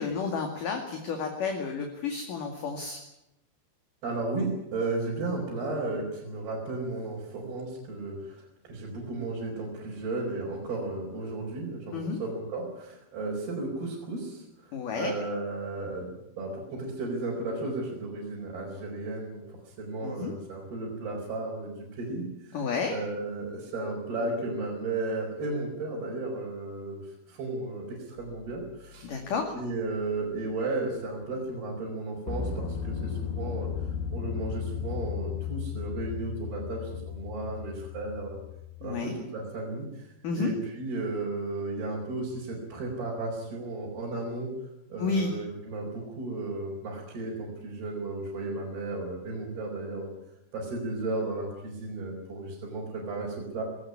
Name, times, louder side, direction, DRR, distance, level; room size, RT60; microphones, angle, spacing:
voice 1, 0.0-3.0 11.9-12.2 14.7-15.1 20.0-20.3 22.5-22.9 29.0-29.5 38.8-39.2 40.2-40.5 45.0-45.3, left 5 dB, 55° left, 3 dB, 3.5 m, -31 dB
voice 2, 4.0-19.4 19.8-22.6 22.9-29.1 29.5-33.7 34.1-38.4 38.8-40.1 40.4-44.5 44.9-50.1 50.5-53.6, right 2 dB, 60° right, -3 dB, 6.7 m, -34 dB
sound 1, 28.2-28.4 32.3-39.0, left 7 dB, 80° left, 4.5 m, -35 dB
20.0 x 18.0 x 9.8 m, 0.89 s
omnidirectional pair, 5.1 m